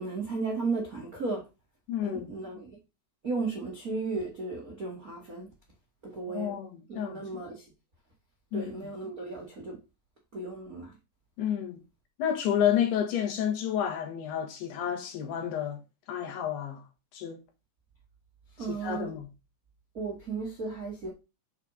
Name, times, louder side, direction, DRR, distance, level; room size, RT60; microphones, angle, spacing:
voice 1, 0.0-1.4 2.0-2.7 3.2-5.5 6.0-6.5 6.9-7.6 8.5-9.8 10.3-10.9 18.6-19.1 19.9-21.1, right 3 dB, 60° right, 0.9 m, -34 dB
voice 2, 1.9-2.3 6.3-7.4 8.5-8.7 11.4-11.8 12.2-15.8 16.1-16.8 17.1-17.4 18.7-19.3, left 9 dB, 80° left, 3.3 m, -30 dB
7.3 x 3.8 x 4.8 m
omnidirectional pair, 4.8 m